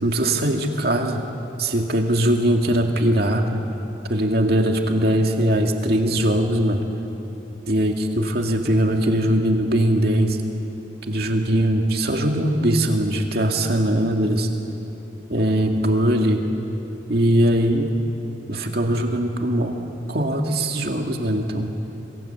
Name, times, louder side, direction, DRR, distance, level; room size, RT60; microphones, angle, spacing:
voice 1, 0.0-1.2 1.6-3.6 4.1-6.8 7.7-10.4 11.1-14.5 15.3-16.4 17.1-17.9 18.5-19.8 20.1-21.7, right 1 dB, 55° right, 3 dB, 2.3 m, -21 dB
27.0 x 22.5 x 8.0 m, 3.0 s
head